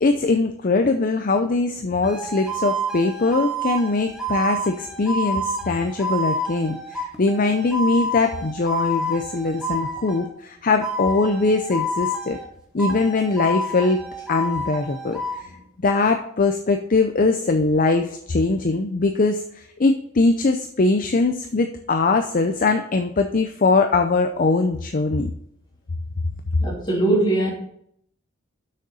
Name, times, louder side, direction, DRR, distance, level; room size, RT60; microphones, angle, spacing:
voice 1, 0.0-12.4 12.7-15.5 15.8-25.3, left 3 dB, 40° left, 6 dB, 0.6 m, -21 dB
sound 1, 2.0-10.3 10.8-12.5 12.8-15.4, equal, 5° right, 1.2 m, -29 dB
voice 2, 26.6-27.5, right 2 dB, 20° left, -3 dB, 2.9 m, -20 dB
6.6 x 6.5 x 5.4 m, 0.69 s
head